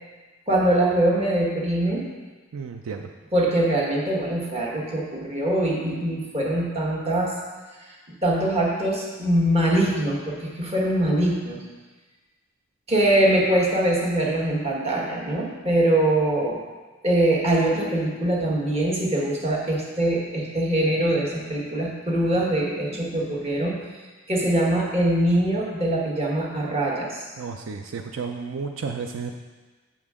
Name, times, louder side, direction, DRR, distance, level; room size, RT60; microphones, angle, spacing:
voice 1, 0.5-2.0 3.3-7.4 8.2-11.6 12.9-16.6 17.0-23.8 24.3-27.3, right 1 dB, 30° right, -3 dB, 1.3 m, -23 dB
voice 2, 2.5-3.1 27.4-29.3, right 5 dB, 75° right, 4 dB, 0.4 m, -32 dB
7.3 x 7.0 x 3.6 m, 1.3 s
head